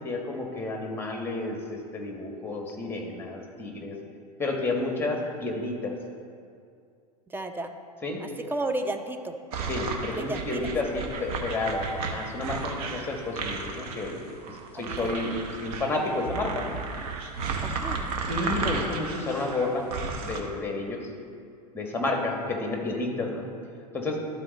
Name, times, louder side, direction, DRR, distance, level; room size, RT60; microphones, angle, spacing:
voice 1, 0.0-4.0 4.4-5.9 8.0-8.2 9.7-14.2 14.7-16.8 18.3-19.9 20.2-21.0 21.7-23.5 23.9-24.2, left 2 dB, 10° left, 1 dB, 1.4 m, -31 dB
voice 2, 7.3-7.7 8.2-9.3 10.1-10.7 14.7-15.2 17.6-18.1, right 2 dB, 10° right, 5 dB, 0.5 m, -33 dB
sound 1, 9.5-20.4, right 4 dB, 65° right, 1.0 m, -33 dB
12.5 x 4.2 x 4.1 m, 2.3 s
hypercardioid pair, 100°, 21 cm